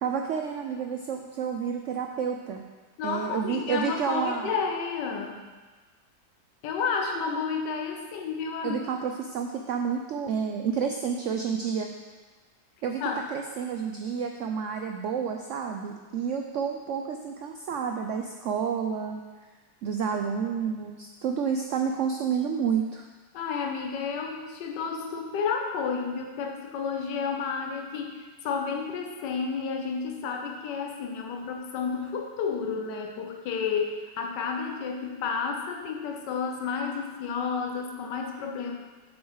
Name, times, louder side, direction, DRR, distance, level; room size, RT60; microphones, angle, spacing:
voice 1, 0.0-2.6 3.0-4.5 8.6-11.9 12.8-13.0 13.3-19.2 19.8-23.1, right 7 dB, 80° right, 4 dB, 0.6 m, -30 dB
voice 2, 3.0-5.5 6.6-8.8 13.0-13.3 23.3-38.8, left 5 dB, 90° left, 2 dB, 1.4 m, -31 dB
7.2 x 6.2 x 4.7 m, 1.3 s
omnidirectional pair, 1.8 m